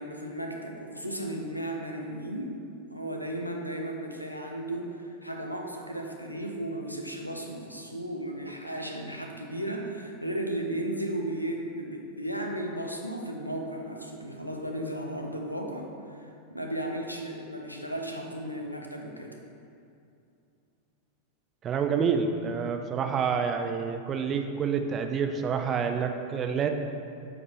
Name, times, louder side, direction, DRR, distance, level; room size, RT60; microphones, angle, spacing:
voice 1, 0.0-2.6 2.9-19.4, right 1 dB, 90° left, 2 dB, 0.7 m, -35 dB
voice 2, 21.6-26.7, right 6 dB, 25° right, 6 dB, 0.5 m, -28 dB
8.5 x 5.0 x 3.5 m, 2.5 s
figure-of-eight pair, 90°, 0 cm